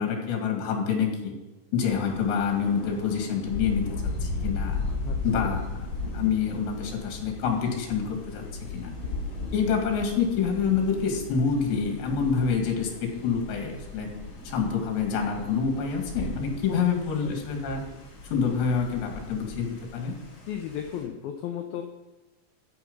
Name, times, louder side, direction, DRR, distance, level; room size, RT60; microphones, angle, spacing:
voice 1, 0.0-1.3 1.7-3.9 4.2-4.8 5.2-5.6 6.1-8.4 8.7-8.9 9.5-14.1 14.4-17.8 18.3-20.1, left 6 dB, 65° left, 2 dB, 4.3 m, -27 dB
Thunder, 1.8-21.0, left 2 dB, 40° left, 5.3 m, -36 dB
voice 2, 5.0-5.6 16.7-16.8 17.3-17.4 20.5-21.8, left 9 dB, 85° left, 4 dB, 2.1 m, -35 dB
13.5 x 9.0 x 5.5 m, 1.1 s
omnidirectional pair, 5.5 m